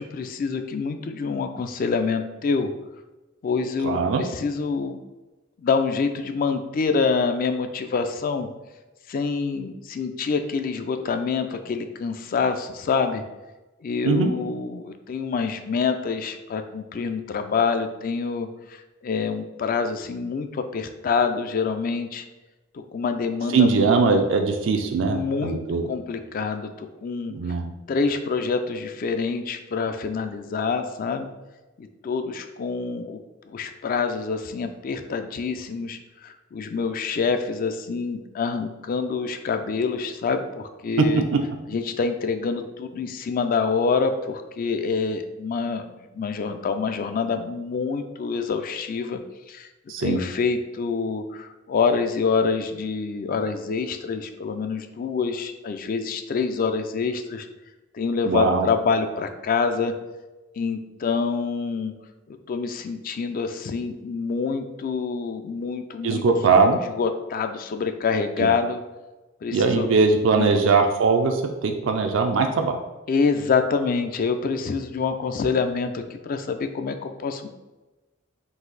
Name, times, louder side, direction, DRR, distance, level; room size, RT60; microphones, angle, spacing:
voice 1, 0.0-2.7 3.4-5.0 5.6-8.5 9.1-13.2 13.8-22.2 22.9-23.9 25.0-25.6 25.9-27.3 27.9-31.3 31.8-33.2 33.5-41.2 41.7-49.2 49.5-49.7 50.0-57.5 57.9-59.9 60.6-61.9 62.3-66.2 67.0-68.8 69.4-69.9 70.4-70.5 73.1-77.5, left 5 dB, 45° left, 8 dB, 0.3 m, -26 dB
voice 2, 3.8-4.2 14.0-14.3 23.5-25.9 27.3-27.7 41.0-41.1 41.3-41.4 49.9-50.2 58.3-58.7 66.0-66.8 68.4-68.5 69.5-72.8, right 4 dB, 70° right, 4 dB, 0.4 m, -20 dB
4.0 x 2.6 x 3.9 m, 1.1 s
head